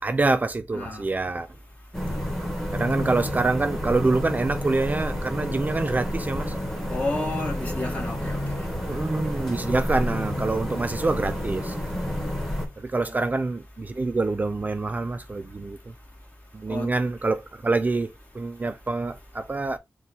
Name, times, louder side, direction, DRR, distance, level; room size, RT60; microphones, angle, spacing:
voice 1, 0.0-1.5 2.7-6.5 8.9-11.8 12.8-15.9 16.5-19.8, right 3 dB, 30° right, 0.3 m, -26 dB
voice 2, 0.7-1.0 6.9-8.6 13.0-13.2 16.7-16.9, left 2 dB, 30° left, 1.6 m, -31 dB
sound 1, 1.9-12.7, equal, 5° left, 1.5 m, -30 dB
4.2 x 2.3 x 4.0 m
wide cardioid pair, 115°, 5 cm